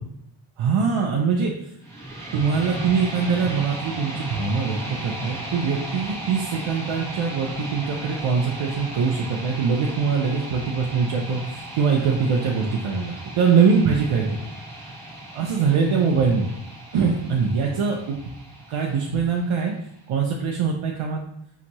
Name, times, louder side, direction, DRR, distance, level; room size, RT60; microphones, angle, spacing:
voice 1, 0.6-1.7 2.3-14.5 15.3-16.5 16.9-18.2 18.7-19.7 20.1-21.2, right 5 dB, 80° right, -1 dB, 0.6 m, -23 dB
sound 1, 1.8-19.8, right 1 dB, 5° left, 1.1 m, -36 dB
5.8 x 2.6 x 2.9 m, 0.74 s
wide cardioid pair, 105°, 49 cm